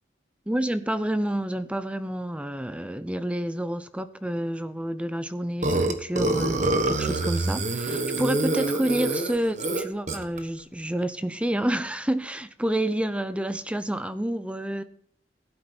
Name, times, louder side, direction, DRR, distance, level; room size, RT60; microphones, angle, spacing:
voice 1, 0.5-14.8, right 1 dB, 5° right, 12 dB, 0.5 m, -29 dB
Burping eructation, 5.6-10.4, right 2 dB, 40° right, 1.2 m, -26 dB
15.5 x 8.8 x 4.4 m, 0.64 s
head